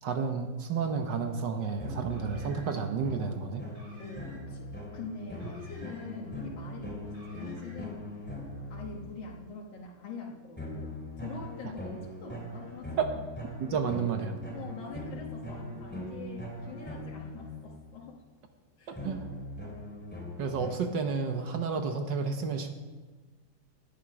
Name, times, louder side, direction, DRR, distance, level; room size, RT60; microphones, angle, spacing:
voice 1, 0.0-3.7 13.0-13.1 13.6-14.4 18.9-19.3 20.4-22.7, right 5 dB, 70° right, 5 dB, 1.7 m, -31 dB
sound 1, 1.8-9.4 10.6-18.1 18.9-20.8, left 1 dB, 5° left, 2.8 m, -41 dB
Car, 2.0-2.9 3.6-4.6 5.3-6.3 7.0-7.9, right 1 dB, 50° right, 4.7 m, -56 dB
voice 2, 4.0-8.0 8.7-11.0 11.2-13.2 14.5-18.2 18.8-19.0, left 4 dB, 90° left, -2 dB, 2.1 m, -44 dB
18.5 x 11.0 x 4.9 m, 1.3 s
omnidirectional pair, 2.0 m